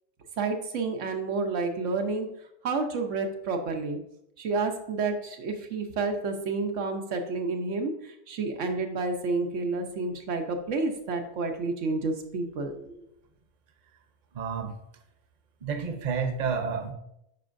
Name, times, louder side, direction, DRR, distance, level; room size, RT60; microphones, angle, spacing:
voice 1, 0.4-2.3 2.6-4.0 4.4-12.9, right 3 dB, 90° right, 4 dB, 1.2 m, -30 dB
voice 2, 14.3-14.7 15.6-16.9, right 5 dB, 45° right, 6 dB, 0.8 m, -30 dB
8.9 x 5.3 x 2.6 m, 0.80 s
omnidirectional pair, 1.2 m